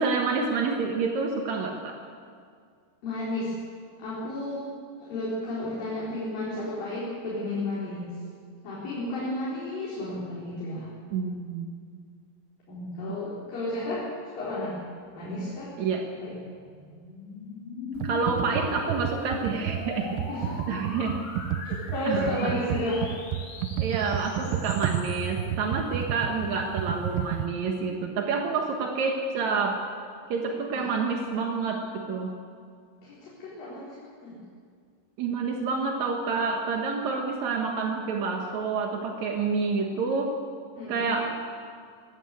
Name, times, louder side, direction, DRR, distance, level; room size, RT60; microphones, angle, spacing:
voice 1, 0.0-2.0 11.1-11.7 15.8-16.1 18.0-20.2 20.7-21.2 22.1-22.6 23.8-29.8 30.3-32.3 35.2-40.4 40.9-41.4, right 4 dB, 65° right, 2 dB, 1.8 m, -28 dB
voice 2, 3.0-3.5 4.0-4.7 5.0-8.1 8.6-10.9 12.7-14.1 14.4-14.8 15.1-15.7 16.2-16.3 20.3-20.7 21.6-23.1 30.7-30.9 33.0-34.4 40.8-41.2, left 1 dB, 50° left, -7 dB, 5.6 m, -32 dB
sound 1, 15.7-25.5, left 3 dB, 85° left, 4.9 m, -41 dB
Computer keyboard, 18.0-27.5, right 10 dB, 85° right, 3.0 m, -31 dB
22.0 x 15.5 x 8.3 m, 2.1 s
omnidirectional pair, 5.2 m